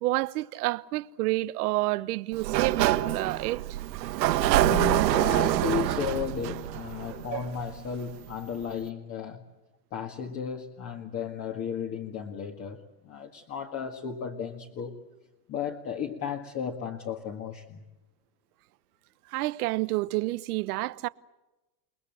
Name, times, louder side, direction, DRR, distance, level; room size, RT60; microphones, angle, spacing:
voice 1, 0.0-3.8 19.3-21.1, right 19 dB, 65° right, 1.1 m, -29 dB
Sliding door, 2.3-8.0, right 14 dB, 80° right, 1.7 m, -26 dB
voice 2, 4.6-9.4 9.9-15.0 15.5-17.8, left 7 dB, 30° left, 1.9 m, -34 dB
29.5 x 20.0 x 7.8 m
supercardioid pair, 150°, 49 cm